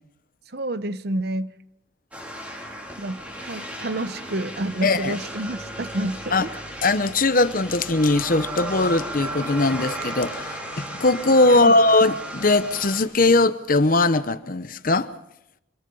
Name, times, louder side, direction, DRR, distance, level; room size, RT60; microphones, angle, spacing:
voice 1, 0.5-1.5 3.0-6.5 11.5-11.8, right 1 dB, 55° right, 0.9 m, -29 dB
sound 1, 2.1-13.0, right 1 dB, 5° right, 4.4 m, -35 dB
voice 2, 4.8-5.2 6.3-6.5 6.8-15.1, left 2 dB, 45° left, 1.0 m, -20 dB
26.5 x 22.0 x 5.6 m
head